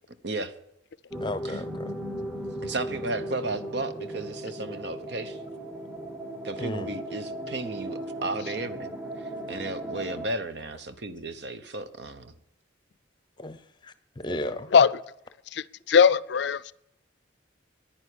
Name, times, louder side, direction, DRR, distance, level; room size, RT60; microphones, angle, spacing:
sound 1, 1.1-10.3, right 1 dB, 5° right, 1.0 m, -37 dB
voice 1, 1.2-1.9 6.6-6.9 13.4-14.7, left 1 dB, 25° left, 0.7 m, -35 dB
voice 2, 2.6-5.4 6.4-8.9 9.2-12.3 14.3-14.6, right 2 dB, 60° right, 1.0 m, -34 dB
voice 3, 15.5-16.7, left 6 dB, 60° left, 0.4 m, -20 dB
10.5 x 9.7 x 9.9 m
head